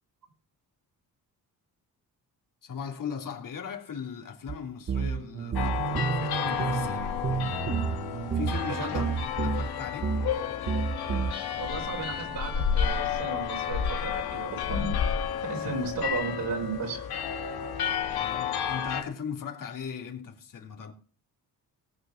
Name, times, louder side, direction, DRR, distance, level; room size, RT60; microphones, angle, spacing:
voice 1, 2.6-7.2 8.3-10.1 15.6-15.8 16.1-16.2 18.1-20.9, left 7 dB, 60° left, 3.0 m, -38 dB
sound 1, 4.5-4.6 4.9-9.7 10.0-10.3 10.7-11.3, right 6 dB, 40° right, 1.2 m, -30 dB
sound 2, 5.6-19.0, left 8 dB, 85° left, 2.3 m, -31 dB
voice 2, 8.7-9.0 11.6-17.3, right 4 dB, 60° right, 4.7 m, -35 dB
19.0 x 6.6 x 6.4 m
cardioid pair, 120°, 37 cm